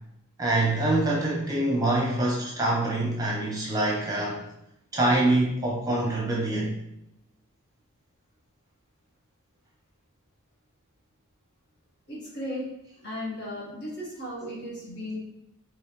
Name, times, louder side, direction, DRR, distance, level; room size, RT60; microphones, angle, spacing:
voice 1, 0.4-4.4 4.9-6.7, right 2 dB, 15° right, -3 dB, 0.8 m, -25 dB
voice 2, 12.1-12.7 13.0-15.2, left 1 dB, 50° left, -6 dB, 1.8 m, -35 dB
5.3 x 3.1 x 3.2 m, 0.81 s
head